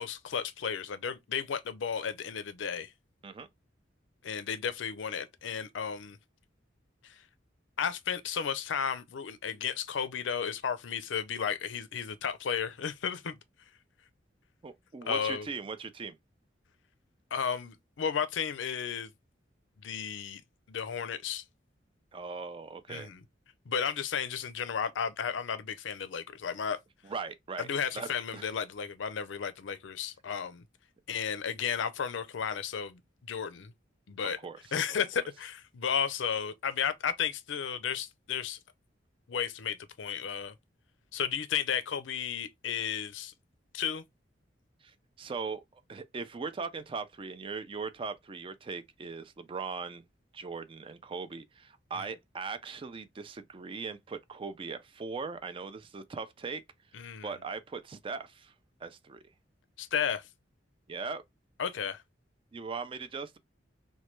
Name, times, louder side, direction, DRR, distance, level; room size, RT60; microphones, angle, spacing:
voice 1, 0.0-2.9 4.2-6.2 7.0-7.2 7.8-13.4 15.0-15.5 17.3-19.1 19.8-20.4 20.7-21.4 22.9-23.2 23.7-26.8 27.7-30.6 31.1-33.0 33.3-33.7 34.1-34.4 34.7-38.6 39.3-40.5 41.1-43.3 43.7-44.0 56.9-57.3 59.8-60.3 61.6-62.0, left 7 dB, 85° left, 0.5 m, -33 dB
voice 2, 14.6-16.2 22.1-23.1 27.0-27.7 27.9-28.1 28.3-28.5 34.4-34.8 44.8-50.0 50.3-56.6 57.2-58.5 58.8-59.2 60.9-61.2 62.5-63.4, right 4 dB, 30° right, 0.4 m, -39 dB
3.1 x 2.2 x 3.0 m
head